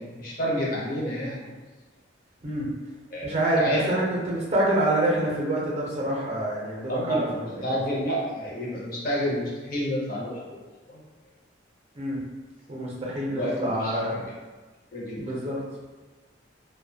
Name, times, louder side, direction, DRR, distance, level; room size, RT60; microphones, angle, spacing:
voice 1, 0.0-1.5 3.1-3.8 6.9-11.0 13.3-14.2 14.9-15.4, equal, 45° left, -4 dB, 0.6 m, -30 dB
voice 2, 3.2-7.8 12.0-12.2 12.7-14.2 15.2-15.6, right 1 dB, 35° right, -4 dB, 0.5 m, -26 dB
2.6 x 2.1 x 2.6 m, 1.3 s
head